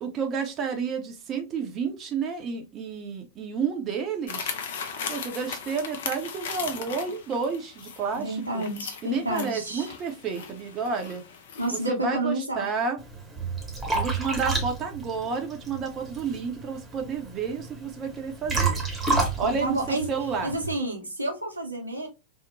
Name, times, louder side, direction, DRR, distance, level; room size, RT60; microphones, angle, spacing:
voice 1, 0.0-4.6 5.1-8.6 9.0-11.2 11.7-13.0 13.9-18.8 19.4-20.6, right 5 dB, 30° right, 0.5 m, -30 dB
sound 1, 4.3-11.9, left 6 dB, 55° left, 0.4 m, -38 dB
voice 2, 8.1-9.9 11.6-12.6 19.4-20.1 20.4-22.1, right 1 dB, 85° right, 0.6 m, -30 dB
Liquid, 13.0-20.7, right 3 dB, 10° right, 0.9 m, -30 dB
2.8 x 2.0 x 2.5 m
figure-of-eight pair, 90°, 0 cm